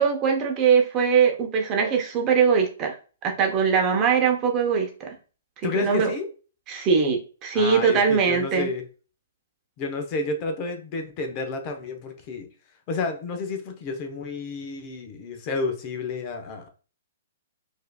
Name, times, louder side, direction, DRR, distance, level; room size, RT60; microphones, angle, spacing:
voice 1, 0.0-3.0 3.2-5.1 5.6-6.1 6.7-8.7, right 6 dB, 30° right, 3 dB, 0.8 m, -21 dB
voice 2, 5.6-6.3 7.5-8.8 9.8-12.5 12.9-16.7, left 3 dB, 35° left, 5 dB, 0.7 m, -30 dB
4.7 x 2.7 x 2.2 m, 0.36 s
hypercardioid pair, 130°, 0 cm